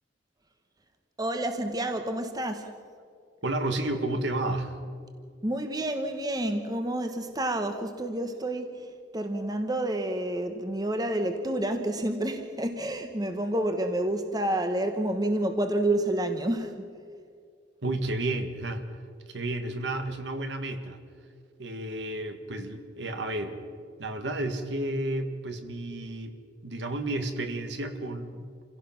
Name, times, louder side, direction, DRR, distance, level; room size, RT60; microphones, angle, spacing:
voice 1, 1.2-2.7 5.4-8.9 9.1-16.8, right 1 dB, 20° right, 6 dB, 1.2 m, -29 dB
voice 2, 3.4-4.9 17.8-18.8 19.3-21.0 21.6-23.6 24.0-26.4 26.6-28.5, right 2 dB, 65° right, 7 dB, 1.9 m, -31 dB
28.0 x 16.5 x 6.0 m, 2.3 s
head